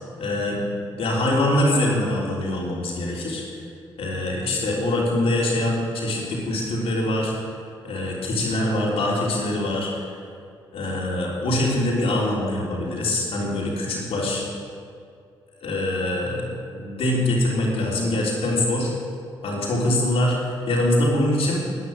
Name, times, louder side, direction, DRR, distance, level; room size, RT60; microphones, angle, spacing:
voice 1, 0.2-0.6 1.0-3.4 4.0-7.5 7.8-10.1 10.7-14.4 15.6-18.9 19.4-21.6, left 1 dB, 70° left, -3 dB, 3.5 m, -24 dB
11.5 x 9.8 x 7.5 m, 2.3 s
supercardioid pair, 50°, 10 cm